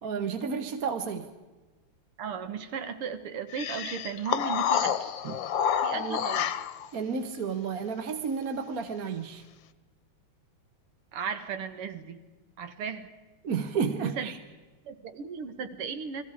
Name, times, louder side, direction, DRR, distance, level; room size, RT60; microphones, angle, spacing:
voice 1, 0.0-1.3 5.2-5.4 5.9-6.3 6.9-9.4 13.4-14.4, right 6 dB, 50° right, 7 dB, 1.3 m, -32 dB
voice 2, 2.2-5.1 5.8-6.5 11.1-12.2 12.6-13.1 14.0-14.3 14.8-16.2, right 6 dB, 90° right, 10 dB, 2.3 m, -36 dB
sound 1, 3.6-6.9, left 8 dB, 65° left, 1.5 m, -28 dB
30.0 x 22.0 x 4.8 m, 1.2 s
omnidirectional pair, 2.4 m